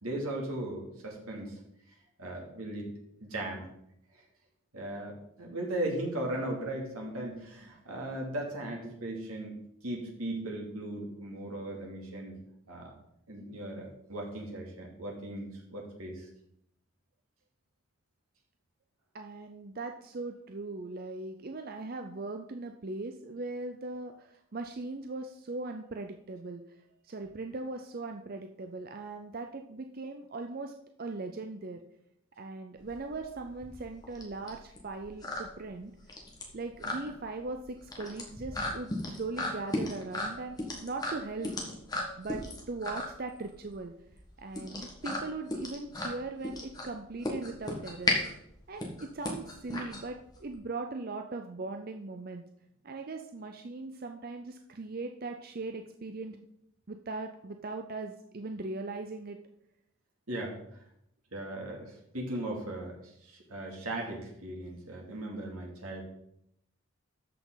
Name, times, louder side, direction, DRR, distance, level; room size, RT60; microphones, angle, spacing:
voice 1, 0.0-1.6 2.2-2.9 3.2-3.6 4.7-5.1 5.4-9.6 9.8-12.4 12.7-12.9 13.3-16.3 60.3-60.8 61.3-63.0 63.2-66.0, right 1 dB, 85° right, -1 dB, 2.8 m, -37 dB
voice 2, 19.1-26.6 27.0-30.7 31.0-31.8 32.4-35.9 36.5-41.5 42.2-42.4 42.7-43.9 44.4-48.2 48.7-52.4 52.8-56.4 56.9-59.4, right 3 dB, 45° right, 5 dB, 0.5 m, -39 dB
sound 1, 32.8-50.5, left 1 dB, 15° left, 1.6 m, -36 dB
13.0 x 5.8 x 4.0 m, 0.77 s
head